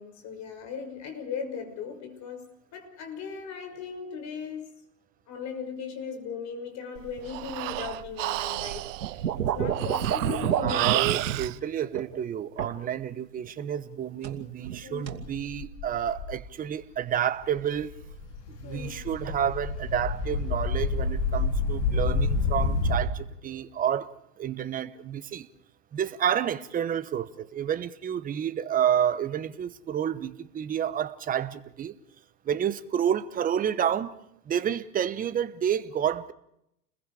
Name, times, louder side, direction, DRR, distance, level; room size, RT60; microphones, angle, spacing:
voice 1, 0.0-4.7 5.3-9.2 9.5-11.0 11.7-11.9 14.8-15.2 18.6-19.0, left 6 dB, 35° left, 6.2 m, -38 dB
Breathing, 7.0-11.5, right 18 dB, 50° right, 0.9 m, -32 dB
sound 1, 9.0-11.4 11.9-12.2 12.6-12.9 14.2-14.8 15.1-15.2, right 9 dB, 85° right, 2.7 m, -28 dB
voice 2, 10.6-17.9 18.5-25.5 25.9-31.9 32.4-34.2 34.4-36.3, right 9 dB, 15° right, 1.0 m, -29 dB
sound 2, 15.2-16.3 17.0-17.1 17.4-23.0, left 3 dB, 70° left, 4.6 m, -29 dB
30.0 x 21.5 x 4.9 m
hypercardioid pair, 120°, 49 cm